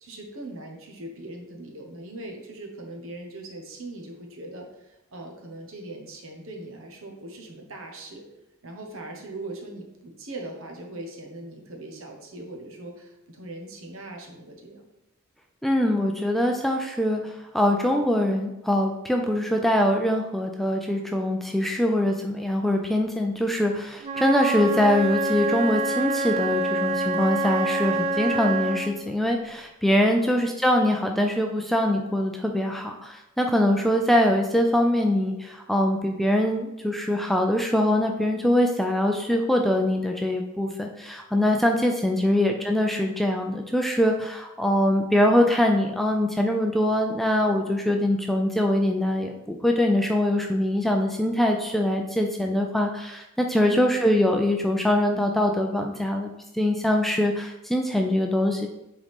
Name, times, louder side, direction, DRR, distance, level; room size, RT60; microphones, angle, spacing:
voice 1, 0.0-8.2 8.6-14.8 30.1-30.3 53.7-54.0, right 2 dB, 70° right, 2 dB, 1.3 m, -40 dB
voice 2, 15.6-56.3 56.5-58.7, left 1 dB, ahead, 2 dB, 0.4 m, -23 dB
Wind instrument woodwind instrument, 24.0-29.0, right 2 dB, 30° right, 0.9 m, -26 dB
9.1 x 3.8 x 3.6 m, 0.93 s
head